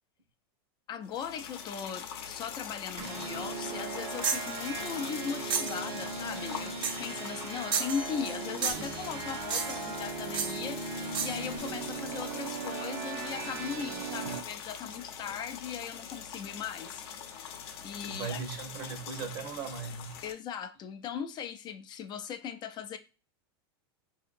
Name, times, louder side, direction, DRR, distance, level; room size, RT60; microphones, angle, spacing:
voice 1, 0.9-10.8 11.2-17.0 17.8-18.4 20.2-23.0, left 7 dB, 30° left, 0.3 m, -38 dB
sound 1, 1.0-20.3, left 8 dB, 70° left, 0.6 m, -43 dB
sound 2, 3.0-14.4, right 4 dB, 85° right, 1.1 m, -38 dB
sound 3, 4.2-4.5 5.5-5.8 6.8-7.1 7.7-8.4 8.6-8.9 9.5-9.9 10.3-10.6 11.1-11.4, right 6 dB, 35° right, 0.6 m, -32 dB
voice 2, 18.0-20.2, right 6 dB, 60° right, 1.0 m, -38 dB
4.3 x 2.8 x 2.5 m
supercardioid pair, 125°, 14 cm